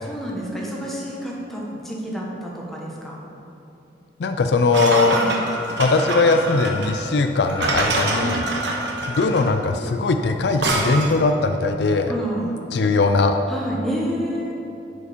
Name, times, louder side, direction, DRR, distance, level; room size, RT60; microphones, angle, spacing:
voice 1, 0.0-3.2 5.1-5.3 8.2-8.5 12.1-12.6 13.5-14.5, equal, ahead, -4 dB, 1.3 m, -29 dB
voice 2, 4.2-5.2 5.8-8.4 9.1-12.1 12.7-13.4, left 3 dB, 65° left, 7 dB, 0.4 m, -20 dB
sound 1, 4.7-11.3, right 2 dB, 75° right, 1.2 m, -26 dB
11.0 x 5.0 x 5.2 m, 2.8 s
head